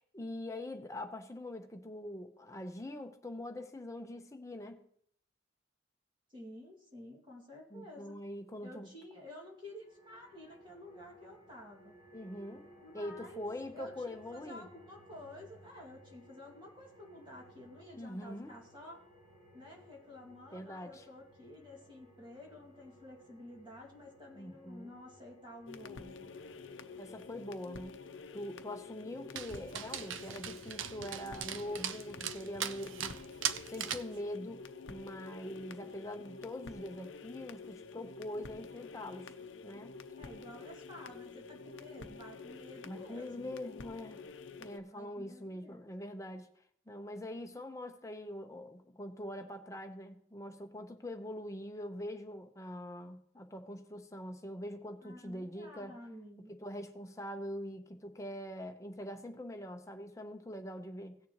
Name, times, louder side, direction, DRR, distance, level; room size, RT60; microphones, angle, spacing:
voice 1, 0.0-4.8 7.7-8.9 12.1-12.7 12.9-14.7 18.0-18.5 20.5-21.0 24.3-24.9 27.0-28.0 28.3-33.2 33.7-39.4 39.6-39.9 42.8-44.2 44.6-46.5 46.9-56.0 56.5-61.2, left 1 dB, 15° left, 0.9 m, -43 dB
voice 2, 6.3-8.2 8.6-11.9 12.5-13.5 13.7-19.0 19.5-26.3 40.2-43.5 44.8-45.8 55.0-56.5, left 1 dB, 25° right, 2.3 m, -51 dB
sound 1, 9.5-27.3, equal, 40° right, 4.2 m, -60 dB
sound 2, 25.7-44.8, left 4 dB, 80° left, 0.7 m, -49 dB
Dog, 29.4-34.2, right 9 dB, 85° right, 0.6 m, -40 dB
17.0 x 6.8 x 3.0 m
head